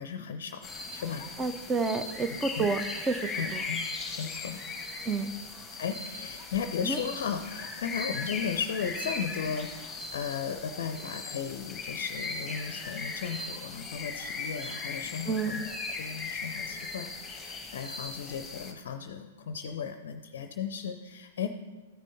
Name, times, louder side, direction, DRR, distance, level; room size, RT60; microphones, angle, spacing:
voice 1, 0.0-1.3 2.6-2.7 3.4-3.8 4.1-4.6 5.8-21.5, left 7 dB, 55° left, 8 dB, 0.5 m, -36 dB
sound 1, 0.6-18.7, left 3 dB, 15° left, 1.3 m, -38 dB
voice 2, 1.4-2.8 3.1-3.6 5.0-5.3 6.8-7.0 15.3-15.5, right 4 dB, 15° right, 10 dB, 0.6 m, -29 dB
13.5 x 6.2 x 4.1 m, 1.3 s
figure-of-eight pair, 105°, 0 cm